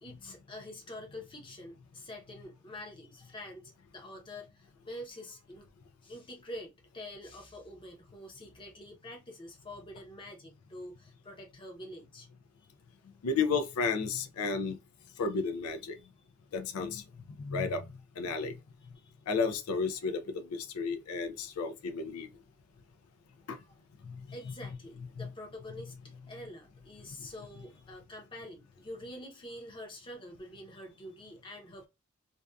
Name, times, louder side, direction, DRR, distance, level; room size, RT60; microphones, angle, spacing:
voice 1, 0.0-5.7 6.0-12.3 15.1-15.2 16.0-16.1 18.9-19.1 20.0-20.2 24.3-25.9 26.3-31.9, left 1 dB, 20° left, 0.7 m, -46 dB
voice 2, 13.2-14.8 15.2-16.0 16.5-17.0 17.4-17.9 18.2-18.6 19.3-22.3 23.5-23.6 24.0-24.2 25.2-25.3, left 4 dB, 75° left, 0.4 m, -32 dB
2.5 x 2.2 x 2.2 m
head